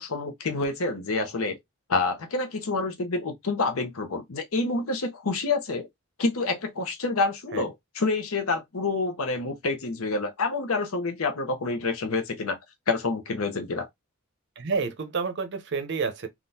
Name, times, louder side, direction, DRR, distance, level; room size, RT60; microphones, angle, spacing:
voice 1, 0.0-1.6 1.9-5.9 6.2-12.6 12.9-13.9, left 3 dB, 70° left, 0.8 m, -28 dB
voice 2, 14.6-16.3, right 5 dB, 55° right, 0.6 m, -29 dB
3.6 x 2.4 x 2.7 m
head